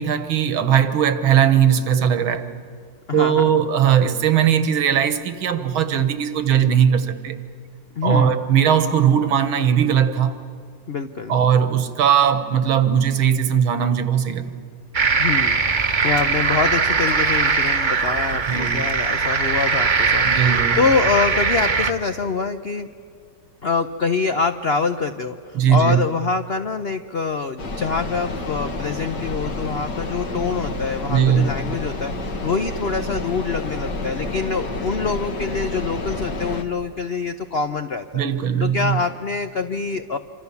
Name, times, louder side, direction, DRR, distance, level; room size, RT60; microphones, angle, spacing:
voice 1, 0.0-2.5 3.1-7.4 8.0-10.3 11.3-14.6 18.5-18.8 20.2-20.8 25.5-26.0 31.1-31.5 38.1-39.0, right 8 dB, 80° right, 2.1 m, -19 dB
voice 2, 3.1-3.4 8.0-8.4 10.9-11.4 15.2-22.9 23.6-38.2 38.6-40.2, left 5 dB, 85° left, 0.5 m, -25 dB
sound 1, 14.9-21.9, right 5 dB, 30° right, 0.9 m, -20 dB
sound 2, 27.6-36.6, left 2 dB, 60° left, 2.1 m, -29 dB
27.5 x 26.0 x 7.1 m
omnidirectional pair, 2.2 m